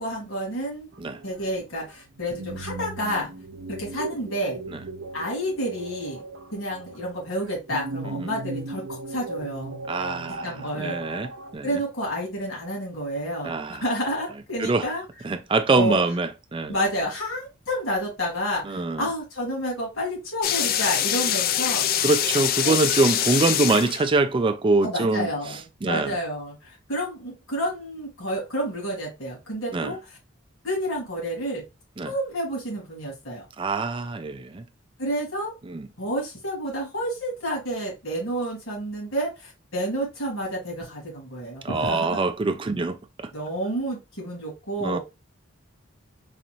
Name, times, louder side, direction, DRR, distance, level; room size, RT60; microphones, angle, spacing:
voice 1, 0.0-0.9 1.2-3.3 3.7-4.6 5.1-6.2 6.5-9.8 10.4-11.0 11.6-15.0 15.7-16.0 16.7-21.8 22.6-22.8 24.8-30.2 30.6-31.6 32.0-33.4 35.0-35.5 36.0-42.2 43.3-45.0, equal, 75° left, 2.3 m, -30 dB
sound 1, 0.9-11.6, right 2 dB, 60° right, 0.6 m, -37 dB
voice 2, 9.9-10.5 10.8-11.7 13.4-13.8 14.6-14.9 15.2-16.8 18.6-19.1 22.0-26.2 29.7-29.9 32.0-32.1 33.6-34.6 35.7-35.9 41.6-43.3 44.8-45.0, right 3 dB, 25° right, 0.4 m, -24 dB
sound 2, 20.4-24.3, left 10 dB, 45° left, 0.3 m, -24 dB
4.0 x 2.5 x 3.0 m
head